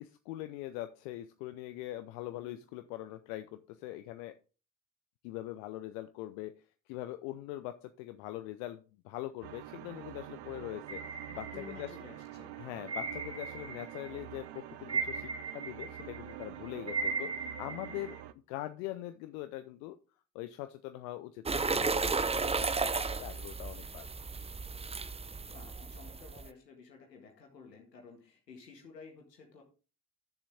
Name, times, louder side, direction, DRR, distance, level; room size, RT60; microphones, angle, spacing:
voice 1, 0.0-4.4 5.2-11.0 11.3-11.9 12.5-18.2 18.5-20.0 20.3-24.1, left 15 dB, 70° left, 10 dB, 0.7 m, -42 dB
sound 1, 9.4-18.3, right 13 dB, 55° right, 0.8 m, -47 dB
sound 2, 10.9-12.2 12.9-14.2 14.5-18.2, right 4 dB, 35° right, 3.5 m, -38 dB
voice 2, 11.2-12.5 25.5-29.6, left 4 dB, 90° left, 2 dB, 1.9 m, -53 dB
sound 3, 21.5-26.5, right 4 dB, 15° right, 0.6 m, -34 dB
11.5 x 7.0 x 3.5 m, 0.35 s
figure-of-eight pair, 45°, 48 cm